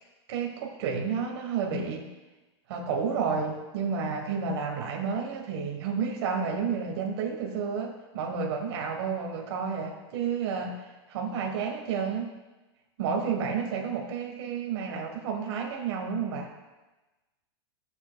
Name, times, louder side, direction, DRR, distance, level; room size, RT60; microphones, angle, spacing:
voice 1, 0.3-2.1 2.7-10.8 11.1-12.3 13.0-16.5, right 6 dB, 65° right, 1 dB, 1.3 m, -31 dB
14.5 x 7.1 x 2.3 m, 1.1 s
hypercardioid pair, 130°, 15 cm